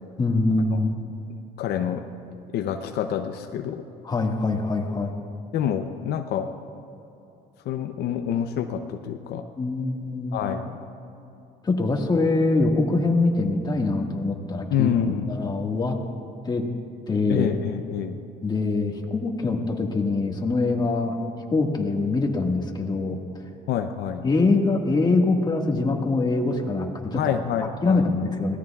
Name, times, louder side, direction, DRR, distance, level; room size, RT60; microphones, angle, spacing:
voice 1, 0.2-1.0 4.0-5.1 9.6-10.5 11.6-14.9 15.3-16.0 16.5-16.7 17.1-17.5 18.4-21.2 21.5-23.2 24.2-27.3 27.8-28.6, left 3 dB, 25° left, 1 dB, 1.7 m, -23 dB
voice 2, 1.6-2.0 2.5-3.8 5.5-6.5 7.7-9.4 10.3-10.8 14.7-15.5 17.3-18.2 23.7-24.2 27.1-28.1, left 9 dB, 75° left, 6 dB, 0.7 m, -27 dB
24.0 x 17.0 x 2.4 m, 2.8 s
cardioid pair, 110°, 17 cm